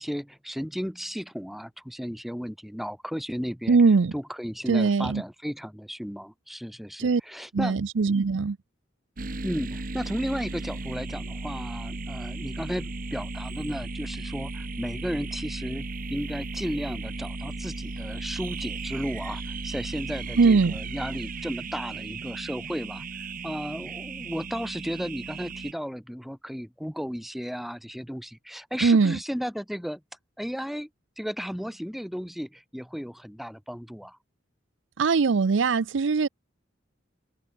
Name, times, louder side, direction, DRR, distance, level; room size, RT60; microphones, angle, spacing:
voice 1, 0.0-3.8 4.1-7.8 9.4-30.0 30.4-30.9 31.2-34.2, equal, ahead, 1.6 m, -34 dB
voice 2, 3.7-4.1 4.7-5.2 7.0-7.2 7.5-8.6 20.4-20.7 28.8-29.2 35.0-36.3, right 4 dB, 75° right, 0.5 m, -21 dB
sound 1, 9.2-25.7, right 3 dB, 45° right, 1.3 m, -35 dB
head